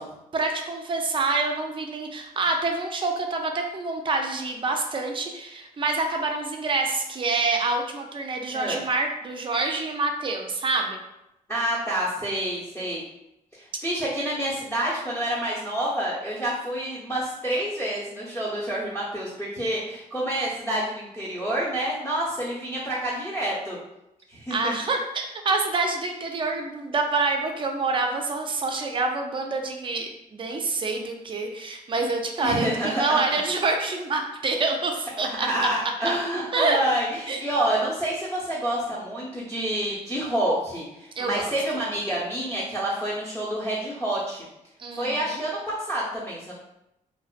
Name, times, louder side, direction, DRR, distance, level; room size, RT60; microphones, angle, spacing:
voice 1, 0.3-11.0 24.5-35.7 36.5-36.8 37.3-37.4 41.2-41.5 44.8-45.4, right 3 dB, 35° right, 3 dB, 0.4 m, -27 dB
voice 2, 11.5-13.0 13.6-23.8 24.3-24.7 32.4-33.4 35.2-44.4 44.9-46.6, right 1 dB, 15° left, -9 dB, 0.8 m, -28 dB
2.4 x 2.2 x 2.4 m, 0.87 s
cardioid pair, 95°, 14 cm